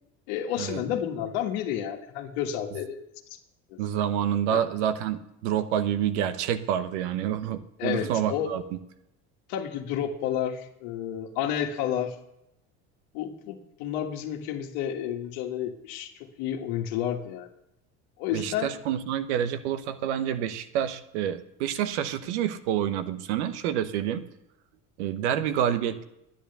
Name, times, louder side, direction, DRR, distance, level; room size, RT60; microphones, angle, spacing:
voice 1, 0.3-3.0 3.3-3.4 3.7-3.8 4.5-4.6 7.8-8.6 9.5-12.1 13.1-17.5 18.2-18.7, left 9 dB, 80° left, 4 dB, 1.7 m, -31 dB
voice 2, 3.8-8.6 18.3-24.2 25.0-26.0, right 10 dB, 85° right, 11 dB, 1.1 m, -28 dB
10.5 x 10.0 x 6.8 m, 0.83 s
supercardioid pair, 90°, 33 cm